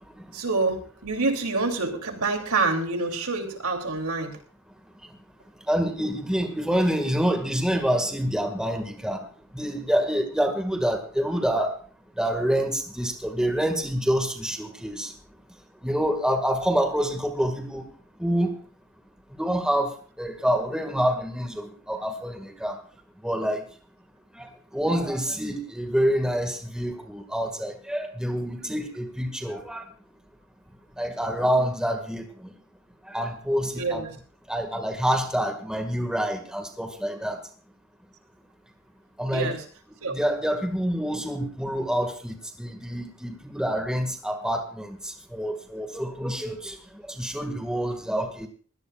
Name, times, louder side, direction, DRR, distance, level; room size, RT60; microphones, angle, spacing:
voice 1, 0.3-4.4 33.8-34.1 39.3-39.6 40.0-40.2, right 3 dB, 85° right, 4 dB, 3.1 m, -27 dB
voice 2, 5.7-9.2 9.5-11.7 12.2-15.1 15.8-17.9 18.2-18.5 19.3-19.9 20.2-22.8 23.2-23.6 24.4-24.5 24.7-29.8 31.0-32.2 33.1-34.1 34.5-37.4 39.2-39.5 40.1-45.0 45.3-46.7 47.2-48.5, equal, 5° right, 4 dB, 1.9 m, -27 dB
22.5 x 17.0 x 2.5 m, 0.42 s
head